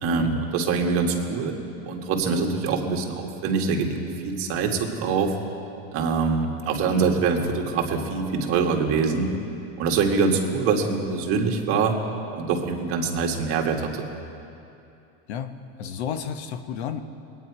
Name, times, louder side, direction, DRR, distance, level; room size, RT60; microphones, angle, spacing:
voice 1, 0.0-1.6 1.9-5.4 5.9-9.3 9.8-12.0 12.3-14.1, right 5 dB, 45° right, 1 dB, 1.7 m, -24 dB
voice 2, 15.8-17.0, left 8 dB, 80° left, 8 dB, 1.0 m, -32 dB
21.5 x 9.4 x 4.7 m, 2.7 s
supercardioid pair, 130°, 32 cm